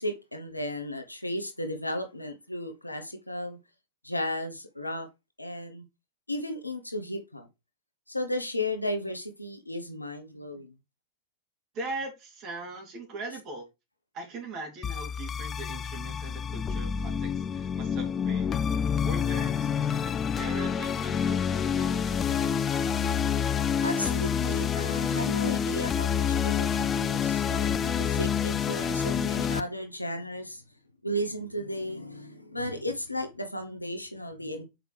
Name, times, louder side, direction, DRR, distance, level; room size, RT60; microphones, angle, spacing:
voice 1, 0.0-3.6 4.0-5.1 5.4-5.8 6.3-7.5 8.1-10.7 23.8-30.6 31.0-34.6, left 1 dB, 85° left, 0.9 m, -34 dB
voice 2, 11.7-13.6 14.1-22.8, right 3 dB, 35° right, 2.8 m, -41 dB
sound 1, 14.8-29.6, left 7 dB, 25° left, 0.4 m, -28 dB
6.4 x 5.0 x 3.3 m
figure-of-eight pair, 90°, 0 cm